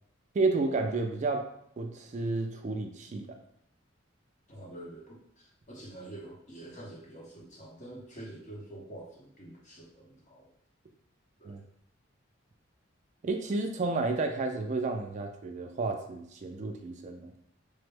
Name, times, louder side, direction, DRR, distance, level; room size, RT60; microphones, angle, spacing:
voice 1, 0.3-1.5 1.8-3.3 11.4-11.6 13.2-17.3, right 3 dB, 40° right, 5 dB, 0.3 m, -31 dB
voice 2, 4.5-10.5 11.4-11.6, right 1 dB, 40° left, -3 dB, 0.8 m, -47 dB
3.3 x 2.0 x 3.3 m, 0.70 s
head